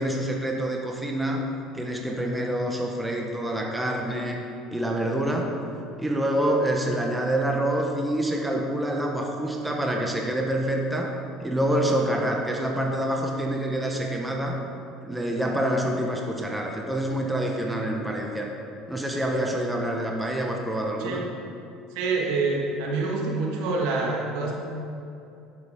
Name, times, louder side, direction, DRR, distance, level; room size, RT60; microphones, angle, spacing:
voice 1, 0.0-1.4 1.7-4.4 4.7-5.5 6.0-11.1 11.4-14.6 15.0-18.5 18.9-21.2, right 1 dB, 10° right, 0 dB, 1.3 m, -26 dB
voice 2, 21.9-24.5, right 3 dB, 75° right, -2 dB, 2.0 m, -26 dB
9.9 x 7.1 x 5.2 m, 2.7 s
supercardioid pair, 95°, 0 cm